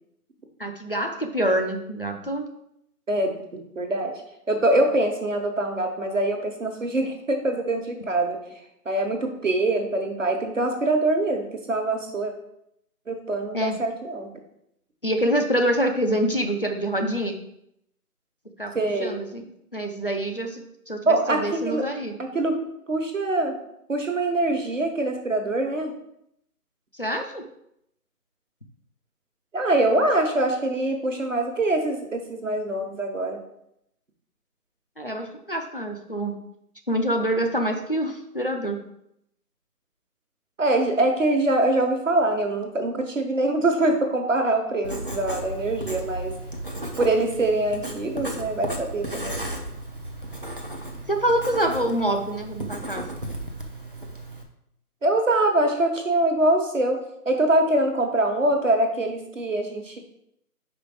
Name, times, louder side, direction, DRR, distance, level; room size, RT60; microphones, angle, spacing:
voice 1, 0.6-2.5 13.5-13.8 15.0-17.4 18.6-18.7 19.0-19.5 19.7-22.2 26.9-27.4 35.0-36.3 36.9-38.8 51.1-53.1, right 1 dB, 35° left, 3 dB, 0.6 m, -26 dB
voice 2, 3.7-4.2 4.5-8.4 8.8-12.3 13.1-14.3 18.7-19.2 21.1-21.9 22.2-22.6 22.9-23.5 23.9-25.9 29.5-33.4 40.6-46.3 47.0-49.4 55.0-57.0 57.2-60.0, right 2 dB, 55° right, 4 dB, 1.2 m, -24 dB
Writing, 44.8-54.4, right 1 dB, 35° right, 0.6 m, -34 dB
5.0 x 4.7 x 4.8 m, 0.78 s
figure-of-eight pair, 165°, 46 cm